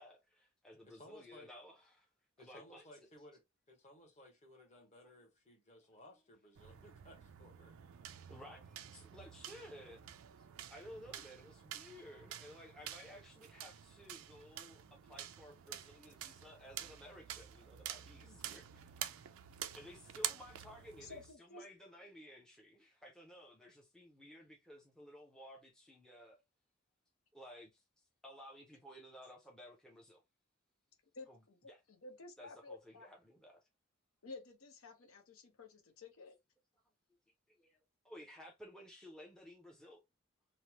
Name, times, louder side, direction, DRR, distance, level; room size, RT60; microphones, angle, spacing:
voice 1, 0.0-2.1 2.4-3.1 4.6-4.7 8.3-10.0 10.4-10.5 10.7-18.9 19.7-26.4 27.3-27.8 28.2-30.2 31.3-31.4 31.7-31.8 32.4-33.7 37.5-40.0, equal, 5° left, 0.5 m, -55 dB
voice 2, 0.8-1.5 2.4-3.4 3.7-7.7, left 1 dB, 30° left, 0.9 m, -59 dB
sound 1, 6.6-21.3, right 11 dB, 80° right, 0.4 m, -48 dB
voice 3, 21.0-21.6 31.1-33.1 34.2-36.4, left 3 dB, 80° left, 0.8 m, -53 dB
3.1 x 2.0 x 2.8 m
head